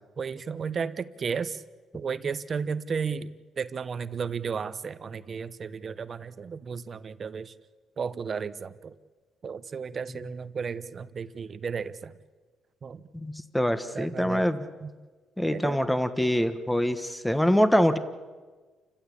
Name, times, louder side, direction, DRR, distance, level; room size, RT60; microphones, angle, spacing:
voice 1, 0.2-1.6 1.9-7.5 8.0-8.9 9.4-12.1 12.8-13.0 13.9-14.4 14.8-14.9 15.5-15.8, right 6 dB, 40° right, 13 dB, 1.0 m, -33 dB
voice 2, 13.1-14.7 15.4-18.0, equal, 5° left, 10 dB, 1.3 m, -24 dB
29.0 x 15.5 x 8.6 m, 1.4 s
cardioid pair, 105°, 0 cm